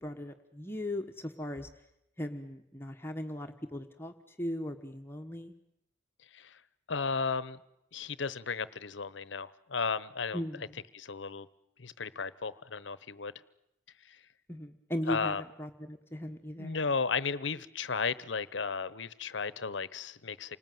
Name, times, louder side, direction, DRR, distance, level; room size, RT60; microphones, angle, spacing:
voice 1, 0.0-1.7 2.2-5.5 10.3-10.7 14.5-16.8, left 1 dB, 10° left, 4 dB, 1.3 m, -38 dB
voice 2, 6.9-7.6 7.9-10.4 10.9-11.5 11.8-13.3 14.0-14.2 15.1-15.4 16.6-20.6, left 5 dB, 70° left, 18 dB, 0.9 m, -34 dB
28.5 x 19.5 x 9.3 m, 0.83 s
head